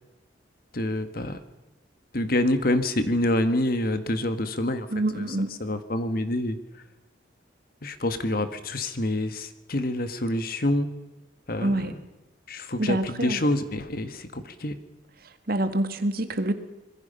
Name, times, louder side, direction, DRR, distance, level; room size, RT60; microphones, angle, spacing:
voice 1, 0.7-1.4 2.1-4.9 5.1-5.3 5.6-6.6 7.8-10.9 11.5-12.0 12.5-14.7, left 1 dB, 50° left, 10 dB, 1.7 m, -27 dB
voice 2, 4.9-5.5 11.6-11.9 12.8-13.4 15.5-16.5, right 1 dB, 50° right, 9 dB, 1.8 m, -26 dB
26.0 x 21.5 x 5.6 m, 1.0 s
head